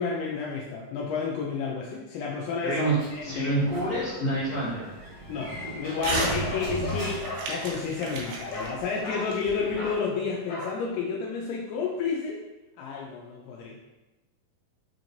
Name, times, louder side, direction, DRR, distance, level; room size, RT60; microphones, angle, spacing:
voice 1, 0.0-2.8 3.2-3.5 5.3-12.4 12.8-13.8, left 5 dB, 80° left, -2 dB, 2.2 m, -31 dB
voice 2, 2.6-4.9, right 2 dB, 50° left, -11 dB, 1.7 m, -27 dB
Sliding door, 3.0-7.6, right 1 dB, 50° right, 2.1 m, -35 dB
Crumpling crinkling / Tearing, 6.0-6.4 6.7-10.0, right 3 dB, 80° right, 2.5 m, -35 dB
Bark, 6.1-7.5 8.5-8.8 9.0-9.3 9.7-10.0 10.5-10.8, left 2 dB, 65° left, 1.9 m, -36 dB
5.7 x 3.0 x 2.6 m, 1.1 s
omnidirectional pair, 4.0 m